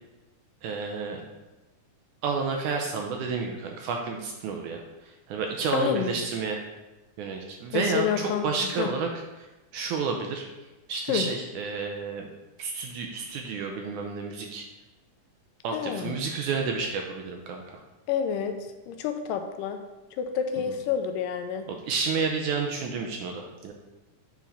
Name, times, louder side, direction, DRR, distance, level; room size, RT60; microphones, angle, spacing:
voice 1, 0.6-1.2 2.2-6.6 7.2-9.1 9.4-9.5 9.7-10.5 10.9-12.3 12.6-14.6 15.6-17.8 21.7-23.7, right 5 dB, 80° right, 2 dB, 1.9 m, -30 dB
voice 2, 5.7-6.2 7.7-8.5 8.8-8.9 11.1-11.3 15.7-16.1 18.1-18.6 18.9-19.8 20.2-21.7, left 8 dB, 80° left, 6 dB, 2.1 m, -28 dB
7.1 x 4.5 x 5.5 m, 1.1 s
omnidirectional pair, 4.0 m